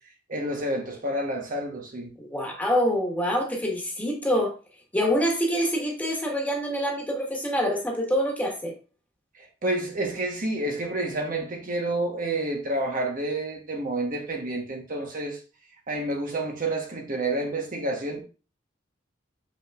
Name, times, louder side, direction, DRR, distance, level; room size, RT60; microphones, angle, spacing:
voice 1, 0.3-2.1 9.4-15.4 15.9-18.2, right 1 dB, 45° right, 1.2 m, -29 dB
voice 2, 2.2-4.5 4.9-8.7, equal, 10° left, 1.7 m, -26 dB
6.6 x 6.2 x 2.5 m
head